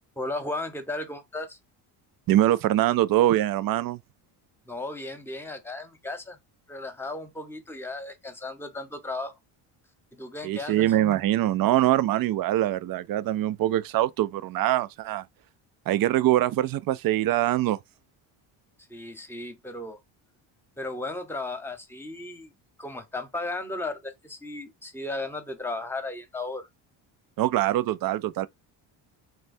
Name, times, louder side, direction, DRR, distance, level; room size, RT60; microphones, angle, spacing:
voice 1, 0.2-1.6 4.7-6.4 6.7-9.4 10.1-10.9 18.9-20.0 20.8-22.5 22.8-26.7, left 2 dB, 5° left, 0.9 m, -35 dB
voice 2, 2.3-4.0 10.4-15.2 15.9-17.8 27.4-28.5, right 14 dB, 50° right, 0.4 m, -23 dB
3.0 x 2.2 x 2.6 m
supercardioid pair, 80°, 49 cm